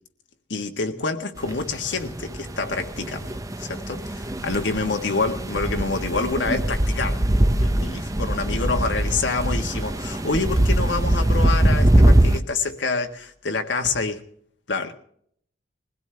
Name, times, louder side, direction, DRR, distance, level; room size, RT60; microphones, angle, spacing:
voice 1, 0.5-14.2 14.7-14.9, left 3 dB, 70° left, 1.5 m, -27 dB
sound 1, 1.4-12.4, right 1 dB, 20° right, 0.7 m, -22 dB
21.5 x 16.5 x 3.4 m
head